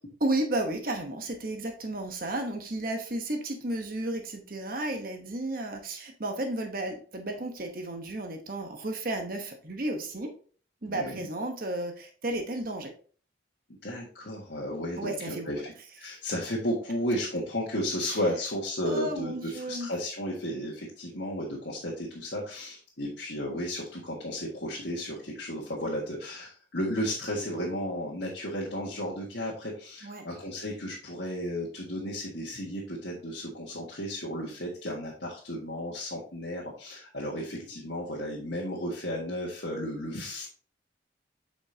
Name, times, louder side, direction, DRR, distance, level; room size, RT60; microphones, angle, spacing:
voice 1, 0.2-10.3 10.8-12.9 15.0-15.5 18.0-18.2 18.8-19.9 30.0-30.2, right 1 dB, 50° right, 4 dB, 1.0 m, -33 dB
voice 2, 10.9-11.3 13.8-40.5, equal, 70° left, -4 dB, 1.6 m, -34 dB
8.3 x 5.3 x 2.8 m, 0.42 s
head